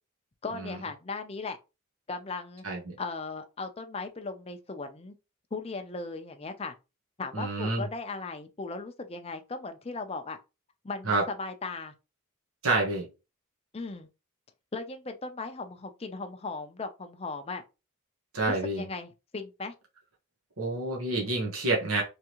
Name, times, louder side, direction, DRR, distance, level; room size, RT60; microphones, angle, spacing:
voice 1, 0.4-1.6 2.1-2.6 3.0-5.1 5.5-6.7 7.2-10.4 10.8-11.9 13.7-14.1 14.7-17.6 18.5-19.7, left 3 dB, 25° left, 0.5 m, -37 dB
voice 2, 7.3-7.9 11.0-11.2 12.6-13.1 18.3-18.8 20.6-22.0, right 2 dB, 75° right, 1.3 m, -28 dB
3.5 x 3.2 x 3.0 m
head